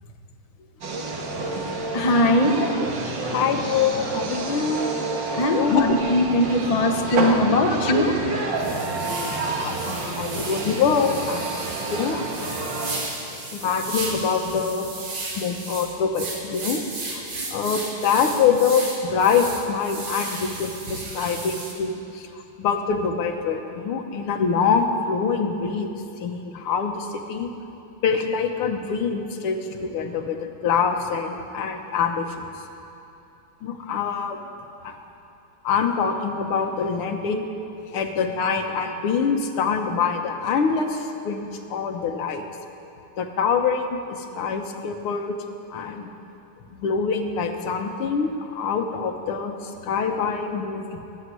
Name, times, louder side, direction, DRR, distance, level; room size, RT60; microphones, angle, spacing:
sound 1, 0.8-13.0, right 3 dB, 55° right, 2.1 m, -29 dB
voice 1, 1.9-2.6 5.3-9.7 10.3-10.5 13.3-13.4, left 1 dB, 35° left, 3 dB, 0.6 m, -22 dB
voice 2, 3.3-5.9 8.8-9.1 9.6-12.5 13.5-14.9 15.4-16.8 17.1-17.2 17.5-25.9 26.2-27.5 28.0-32.4 33.6-34.4 34.8-35.0 35.6-37.5 37.9-42.5 43.2-45.4 45.7-46.1 46.7-51.0, left 6 dB, 80° left, 5 dB, 2.0 m, -25 dB
sound 2, 7.4-7.5 8.0-8.1 8.6-21.7, right 3 dB, 80° right, 3.3 m, -34 dB
20.0 x 7.2 x 9.7 m, 2.8 s
omnidirectional pair, 2.4 m